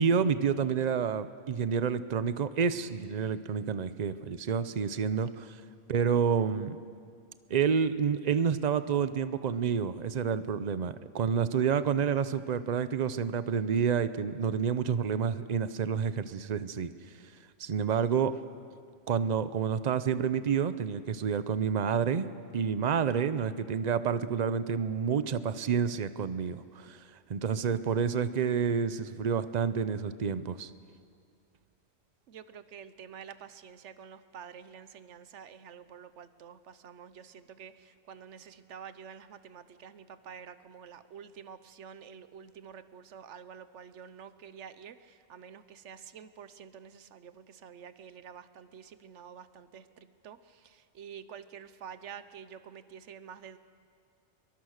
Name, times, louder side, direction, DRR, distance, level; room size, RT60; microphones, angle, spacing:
voice 1, 0.0-5.6 5.9-6.8 7.5-18.4 19.1-22.3 22.5-30.7, right 7 dB, 40° right, 13 dB, 0.7 m, -29 dB
voice 2, 32.3-53.6, right 7 dB, 65° right, 13 dB, 1.1 m, -48 dB
23.0 x 22.0 x 6.5 m, 2.2 s
omnidirectional pair, 1.4 m